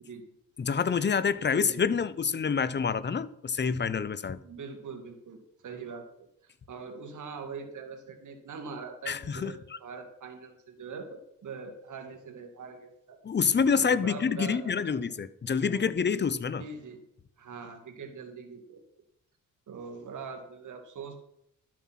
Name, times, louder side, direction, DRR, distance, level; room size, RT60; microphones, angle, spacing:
voice 1, 0.6-4.4 9.1-9.8 13.2-16.6, left 6 dB, 30° left, 0.8 m, -27 dB
voice 2, 1.5-1.9 4.4-6.1 6.4-13.2 13.8-15.0 15.7-15.8 16.6-17.0 17.4-18.8 19.7-21.2, right 5 dB, 65° right, 2.1 m, -42 dB
12.5 x 7.4 x 5.9 m
cardioid pair, 80°, 33 cm